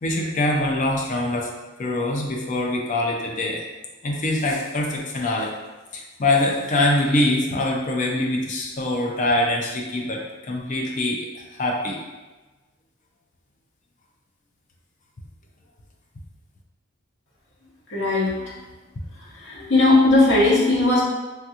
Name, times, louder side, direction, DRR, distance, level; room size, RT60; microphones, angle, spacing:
voice 1, 0.0-1.5 1.8-3.6 4.0-5.5 5.9-12.0, left 1 dB, 35° left, 0 dB, 0.4 m, -24 dB
voice 2, 17.9-18.6 19.2-21.0, left 2 dB, 60° left, -6 dB, 0.9 m, -18 dB
3.3 x 2.4 x 2.8 m, 1.2 s
head